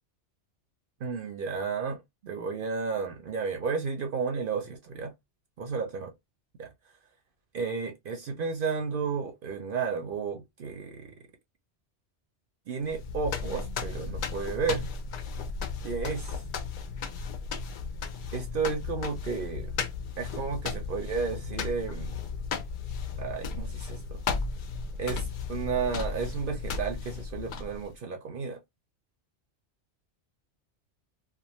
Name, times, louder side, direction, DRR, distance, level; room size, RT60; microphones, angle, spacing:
voice 1, 1.0-5.1 5.6-6.1 6.6-6.7 7.5-11.1 12.7-14.9 15.8-16.4 18.3-19.7 20.2-22.2 23.2-24.3 25.0-28.6, right 5 dB, 60° right, 0.7 m, -32 dB
sound 1, 12.8-28.0, left 5 dB, 60° left, 0.6 m, -35 dB
2.4 x 2.3 x 2.9 m
omnidirectional pair, 1.2 m